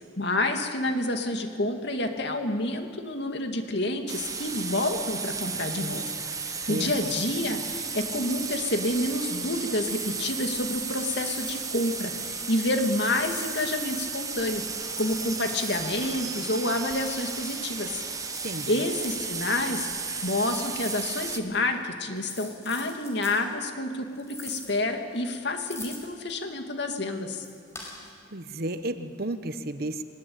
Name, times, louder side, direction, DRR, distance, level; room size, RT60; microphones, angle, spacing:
voice 1, 0.2-6.1 6.5-14.6 15.0-18.0 18.7-19.9 20.2-27.4, left 1 dB, 65° left, 5 dB, 2.6 m, -29 dB
sound 1, 4.1-21.4, right 5 dB, 20° right, 1.4 m, -34 dB
sound 2, 9.8-10.4 10.9-11.9 13.1-14.0 14.7-15.9 16.6-17.6 18.2-19.2 19.9-21.2 21.4-21.6 22.2-23.4 24.2-24.8 25.2-26.3 27.4-28.1, left 2 dB, 15° left, 4.9 m, -44 dB
voice 2, 18.4-18.8 28.3-30.0, right 1 dB, 55° right, 10 dB, 1.1 m, -32 dB
22.0 x 20.5 x 8.9 m, 2.2 s
head